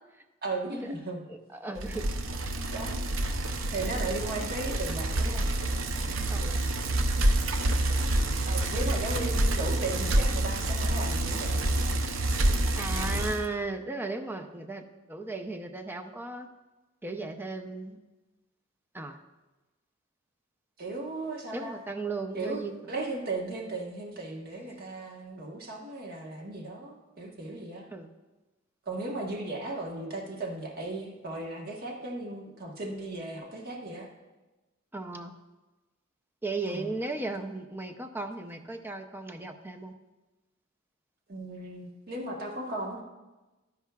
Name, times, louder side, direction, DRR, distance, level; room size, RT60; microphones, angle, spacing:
voice 1, 0.4-1.2 2.7-2.9 3.7-5.5 8.4-11.6 20.8-21.8 22.3-27.9 28.9-34.1 36.7-37.0 41.3-43.0, right 2 dB, 50° right, 0 dB, 1.2 m, -36 dB
voice 2, 1.5-2.0 6.3-6.6 12.8-14.8 15.1-16.5 17.0-18.0 18.9-19.2 21.5-22.8 27.9-28.1 34.9-35.3 36.4-39.9, right 3 dB, 10° right, 6 dB, 0.6 m, -36 dB
Bicycle, 1.8-13.5, right 1 dB, 70° right, 0.7 m, -28 dB
12.0 x 10.5 x 2.4 m, 1.1 s
head